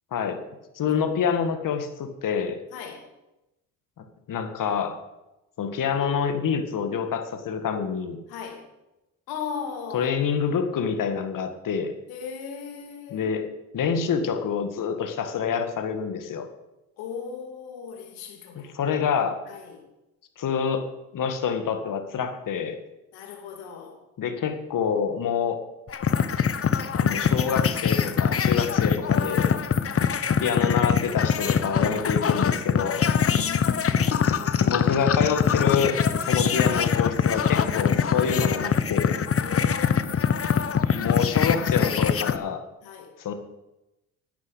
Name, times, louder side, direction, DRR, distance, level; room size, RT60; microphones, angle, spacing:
voice 1, 0.7-2.6 4.0-4.9 5.6-8.2 9.9-11.9 13.1-13.5 13.7-16.5 18.6-19.3 20.4-20.9 21.1-22.8 24.2-25.6 26.9-29.5 30.4-33.1 34.6-39.2 40.9-42.6 43.2-43.3, left 7 dB, 55° left, 7 dB, 2.1 m, -27 dB
voice 2, 2.7-3.1 8.3-8.7 9.3-10.1 12.1-13.3 17.0-18.7 19.5-19.9 23.1-24.0 29.8-30.3 33.2-34.9 39.4-40.7 42.8-43.1, left 6 dB, 75° left, 3 dB, 3.0 m, -38 dB
sound 1, 25.9-42.4, left 7 dB, 35° left, 1.1 m, -23 dB
10.5 x 9.5 x 8.1 m, 0.96 s
hypercardioid pair, 60°, 37 cm